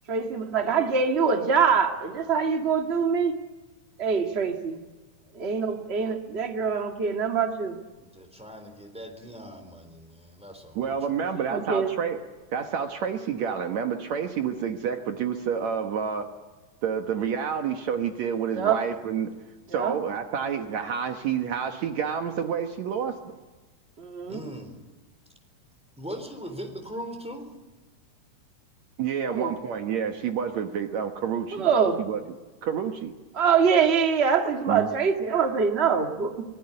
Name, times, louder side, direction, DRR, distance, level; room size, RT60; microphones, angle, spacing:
voice 1, 0.1-3.3 4.0-4.8 5.3-7.8 11.5-11.9 18.5-18.8 19.7-19.9 24.0-24.4 29.3-29.5 31.5-32.0 33.3-36.4, right 6 dB, 25° right, 4 dB, 1.6 m, -24 dB
voice 2, 8.0-11.0 24.3-24.8 26.0-27.5, equal, ahead, 5 dB, 3.6 m, -40 dB
voice 3, 10.8-12.2 12.5-16.3 16.8-19.3 19.7-23.4 29.0-31.7 32.0-32.2 32.6-33.1 34.7-34.9, right 7 dB, 65° right, 5 dB, 2.4 m, -29 dB
25.5 x 19.5 x 9.8 m, 1.2 s
omnidirectional pair, 3.6 m